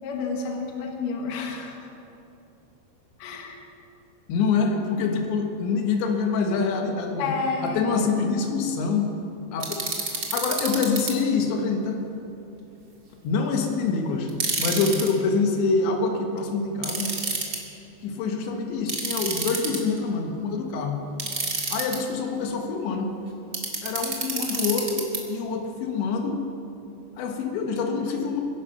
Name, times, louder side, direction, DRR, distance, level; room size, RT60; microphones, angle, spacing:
voice 1, 0.0-1.9 3.2-3.6 7.2-8.1, left 4 dB, 60° left, 2 dB, 2.8 m, -30 dB
voice 2, 4.3-7.3 7.6-9.1 9.5-9.8 10.1-12.0 13.2-14.3 14.6-17.2 18.0-21.0 21.7-23.1 23.8-26.4 27.2-28.4, left 4 dB, 90° left, 3 dB, 3.7 m, -25 dB
sound 1, 9.6-11.1 14.3-15.1 16.8-17.6 18.9-20.0 21.2-22.0 23.5-25.2, right 4 dB, 40° right, 1.4 m, -28 dB
23.0 x 11.0 x 5.7 m, 2.8 s
omnidirectional pair, 4.9 m